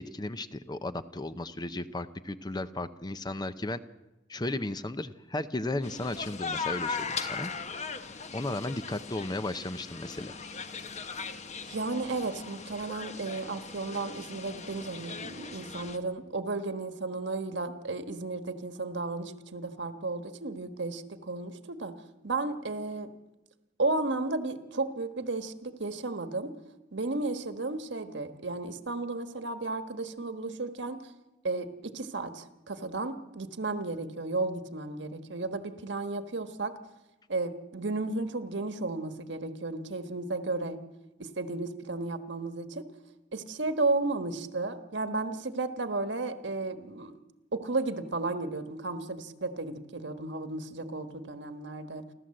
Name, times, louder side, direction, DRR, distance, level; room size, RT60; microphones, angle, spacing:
voice 1, 0.0-3.8 4.3-7.5 8.3-10.3, left 2 dB, 20° left, 12 dB, 0.7 m, -35 dB
sound 1, 5.8-16.0, left 5 dB, 40° left, 1.1 m, -39 dB
voice 2, 11.7-21.9 22.2-23.1 23.8-26.5 26.9-31.0 31.4-36.7 37.3-40.8 41.2-42.9 43.3-47.1 47.5-52.0, right 3 dB, 70° right, 9 dB, 1.5 m, -33 dB
28.5 x 13.0 x 7.8 m, 1.0 s
head